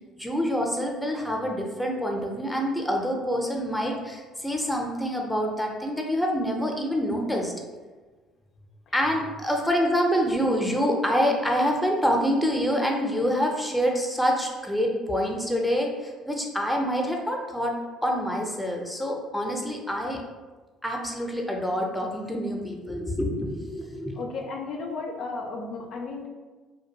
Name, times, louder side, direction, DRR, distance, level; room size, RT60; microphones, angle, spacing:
voice 1, 0.2-7.5 8.9-20.2 20.8-24.1, equal, 5° left, 0 dB, 0.5 m, -26 dB
voice 2, 24.2-26.3, left 4 dB, 60° left, 1 dB, 0.3 m, -34 dB
2.4 x 2.2 x 2.8 m, 1.3 s
hypercardioid pair, 60°, 0 cm